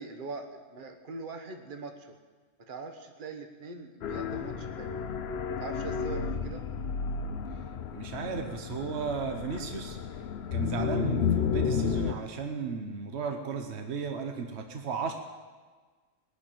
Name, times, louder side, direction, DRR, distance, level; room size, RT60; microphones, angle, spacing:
voice 1, 0.0-2.1 2.6-5.0 5.6-6.6, right 4 dB, 45° right, 5 dB, 1.3 m, -42 dB
sound 1, 4.0-12.1, left 6 dB, 60° left, 1.0 m, -32 dB
voice 2, 7.9-10.0 10.5-15.1, right 5 dB, 60° right, 5 dB, 1.2 m, -35 dB
20.0 x 6.9 x 9.0 m, 1.4 s
omnidirectional pair, 1.3 m